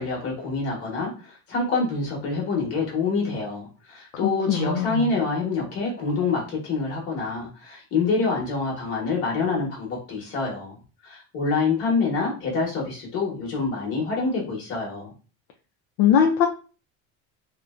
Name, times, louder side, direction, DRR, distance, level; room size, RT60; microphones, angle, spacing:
voice 1, 0.0-10.8 11.0-15.1, left 4 dB, 35° left, -2 dB, 1.0 m, -26 dB
voice 2, 4.5-5.1 16.0-16.5, left 8 dB, 60° left, 2 dB, 0.5 m, -20 dB
2.5 x 2.1 x 2.3 m, 0.35 s
cardioid pair, 150°, 39 cm